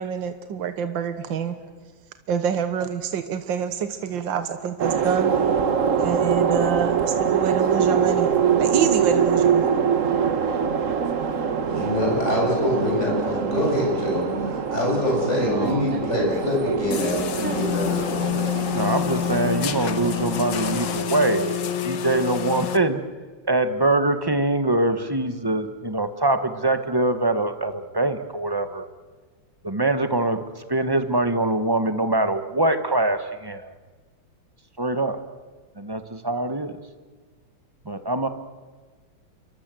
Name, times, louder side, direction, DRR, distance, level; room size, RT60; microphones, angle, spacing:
voice 1, 0.0-1.6 2.3-5.3 6.0-8.3 8.6-9.7, right 7 dB, 80° right, 9 dB, 1.9 m, -27 dB
sound 1, 4.8-21.0, right 7 dB, 45° right, 1.5 m, -24 dB
voice 2, 11.6-18.3, left 1 dB, 35° left, -2 dB, 8.4 m, -25 dB
voice 3, 15.4-15.8 18.7-23.0 23.5-28.8 29.6-30.4 30.7-33.7 34.8-35.2 35.8-36.8 37.8-38.3, right 2 dB, 15° right, 9 dB, 1.1 m, -23 dB
sound 2, 16.9-22.8, left 11 dB, 70° left, 1.7 m, -27 dB
28.5 x 24.0 x 7.7 m, 1.5 s
omnidirectional pair, 2.1 m